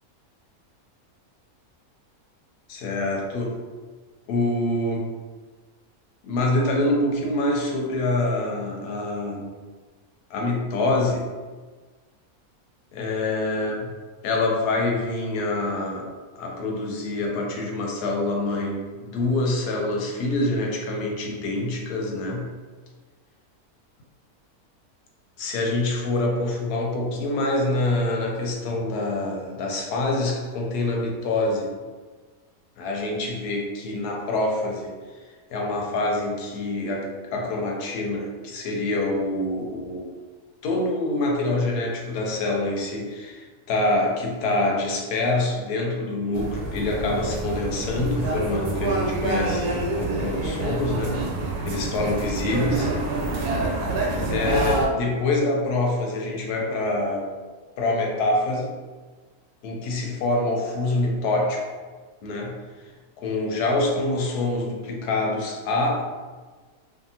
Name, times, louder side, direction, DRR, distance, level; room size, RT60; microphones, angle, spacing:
voice 1, 2.7-3.6 4.3-5.1 6.2-9.5 10.3-11.3 12.9-13.9 14.2-16.1 16.4-22.5 25.4-31.7 32.8-40.2 40.6-51.2 51.6-52.9 54.3-57.3 57.8-58.7 59.6-61.8 62.2-62.9 63.2-66.0, left 2 dB, 90° left, 0 dB, 1.1 m, -26 dB
sound 1, 46.3-54.9, right 2 dB, 85° right, 1.1 m, -27 dB
2.6 x 2.4 x 2.7 m, 1.4 s
omnidirectional pair, 1.6 m